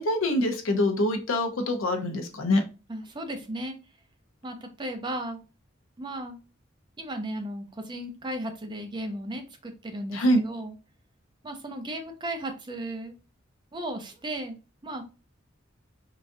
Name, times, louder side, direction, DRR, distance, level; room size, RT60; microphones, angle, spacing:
voice 1, 0.0-2.6 10.1-10.4, left 1 dB, 85° left, 6 dB, 0.7 m, -24 dB
voice 2, 2.9-3.8 4.4-5.4 6.0-6.4 7.0-10.7 11.4-13.1 13.7-14.6 14.8-15.0, right 1 dB, 25° right, 5 dB, 0.5 m, -35 dB
3.8 x 2.4 x 2.5 m, 0.32 s
head